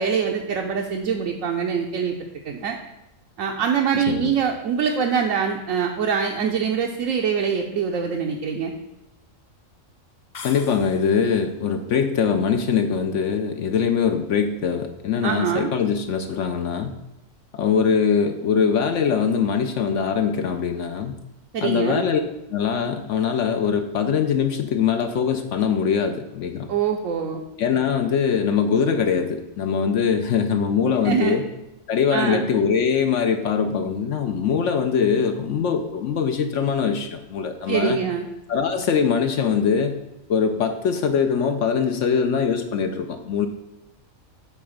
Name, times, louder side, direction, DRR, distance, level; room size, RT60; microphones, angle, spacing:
voice 1, 0.0-2.2 2.4-2.8 3.4-8.7 15.2-15.7 21.5-22.1 26.7-27.4 31.0-31.4 32.1-32.5 37.7-38.2, right 7 dB, 75° right, 1 dB, 1.1 m, -24 dB
voice 2, 3.9-4.3 10.4-16.9 17.5-21.2 21.6-22.2 22.5-26.7 27.6-31.4 31.9-38.0 38.5-40.0 40.3-43.5, left 6 dB, 70° left, 6 dB, 0.9 m, -22 dB
sound 1, 10.3-11.4, left 5 dB, 45° left, 0.7 m, -40 dB
8.7 x 3.4 x 6.4 m, 0.93 s
omnidirectional pair, 1.4 m